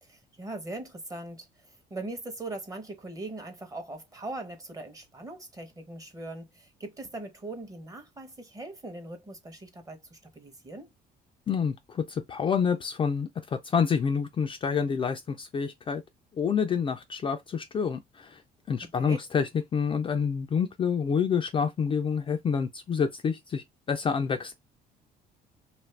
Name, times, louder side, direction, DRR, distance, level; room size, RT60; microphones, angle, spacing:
voice 1, 0.0-10.9 18.8-19.2, right 2 dB, 20° right, 0.8 m, -40 dB
voice 2, 11.5-16.0 16.4-18.4 18.7-24.5, left 6 dB, 30° left, 0.3 m, -28 dB
2.5 x 2.5 x 3.2 m
cardioid pair, 110°, 17 cm